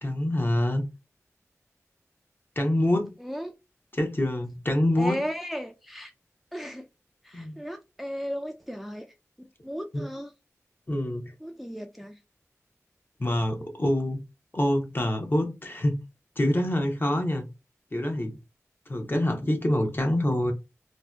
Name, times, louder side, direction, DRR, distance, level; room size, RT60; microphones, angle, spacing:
voice 1, 0.0-0.8 2.6-3.1 3.9-5.2 7.3-7.6 9.9-10.0 10.9-11.3 13.2-14.2 14.5-16.0 16.4-17.5 17.9-18.4 18.9-20.5, left 1 dB, 40° left, 0.7 m, -26 dB
voice 2, 3.2-3.5 5.0-6.1 6.5-6.9 7.2-9.1 9.6-10.3 11.4-12.1, equal, ahead, 0.3 m, -35 dB
2.6 x 2.0 x 2.3 m
wide cardioid pair, 45°, 6 cm